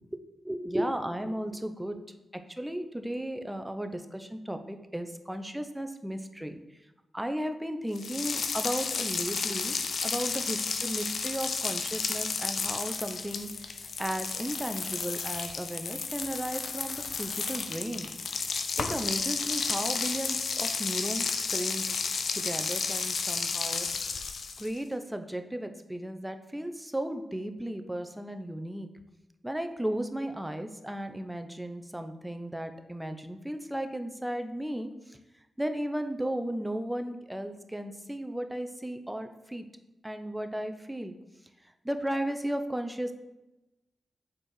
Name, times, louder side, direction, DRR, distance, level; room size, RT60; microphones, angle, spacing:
voice 1, 0.4-2.0 2.3-6.5 7.1-9.8 10.0-13.5 14.0-18.1 18.8-21.8 22.3-23.9 24.6-28.9 29.4-34.9 35.6-39.7 40.0-41.1 41.8-43.1, right 1 dB, 10° right, 7 dB, 0.8 m, -35 dB
sound 1, 7.9-24.8, left 5 dB, 70° left, 0.7 m, -32 dB
6.2 x 4.5 x 6.6 m, 0.98 s
supercardioid pair, 40°, 0 cm